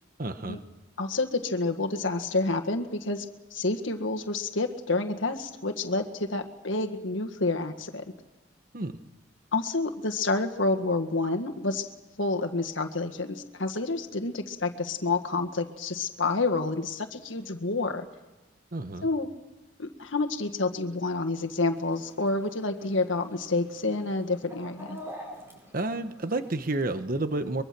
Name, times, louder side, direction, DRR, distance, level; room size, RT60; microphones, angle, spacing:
voice 1, 0.2-0.6 8.7-8.9 18.7-19.1 25.7-27.6, right 2 dB, 45° right, 9 dB, 1.2 m, -30 dB
voice 2, 1.0-3.3 3.5-8.0 9.5-11.9 12.2-18.0 19.0-19.3 19.8-25.0, left 3 dB, 80° left, 5 dB, 1.7 m, -29 dB
Chicken rooster, 21.7-26.8, equal, 15° right, 4.5 m, -47 dB
24.0 x 22.5 x 6.0 m, 1.1 s
head